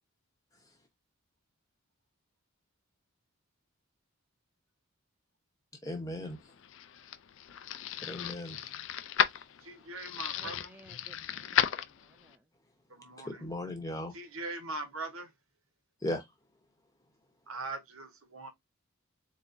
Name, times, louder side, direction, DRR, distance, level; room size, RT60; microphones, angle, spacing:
voice 1, 5.8-6.4 8.0-8.6 13.2-14.1 16.0-16.2, left 1 dB, 15° left, 0.9 m, -36 dB
sound 1, 6.4-12.4, left 9 dB, 60° left, 0.4 m, -34 dB
voice 2, 9.6-10.7 12.9-13.5 14.1-15.3 17.5-18.5, right 2 dB, 70° right, 1.1 m, -41 dB
voice 3, 10.3-12.4, right 1 dB, 10° right, 0.4 m, -59 dB
4.0 x 3.6 x 2.6 m
head